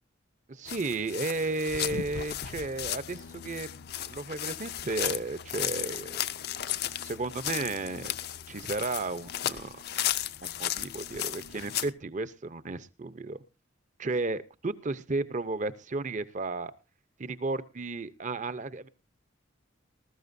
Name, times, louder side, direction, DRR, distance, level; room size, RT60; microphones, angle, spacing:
voice 1, 0.5-3.8 4.1-6.2 7.0-8.1 8.5-9.8 10.4-13.4 14.0-16.7 17.2-18.9, right 3 dB, 40° right, 15 dB, 0.7 m, -33 dB
sound 1, 0.7-11.9, left 11 dB, 55° left, 0.6 m, -35 dB
20.0 x 13.0 x 2.7 m, 0.30 s
head